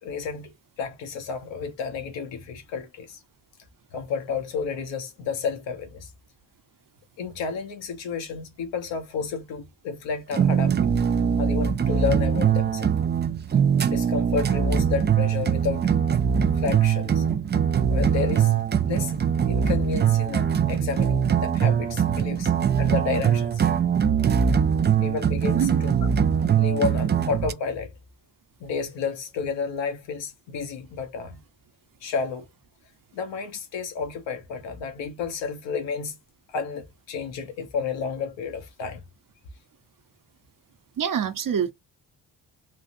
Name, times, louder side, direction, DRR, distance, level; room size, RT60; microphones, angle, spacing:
voice 1, 0.0-3.2 3.9-6.1 7.2-10.7 11.4-12.9 13.9-15.9 16.6-17.2 17.9-18.5 18.9-19.2 19.5-23.6 25.0-25.9 26.6-27.9 28.6-31.4 32.0-32.5 33.1-36.2 36.5-39.0, left 5 dB, 85° left, 1.1 m, -31 dB
sound 1, 10.3-27.5, right 8 dB, 25° right, 0.4 m, -22 dB
voice 2, 41.0-41.7, right 8 dB, 50° right, 0.9 m, -25 dB
3.5 x 2.4 x 2.6 m
cardioid pair, 70°, 43 cm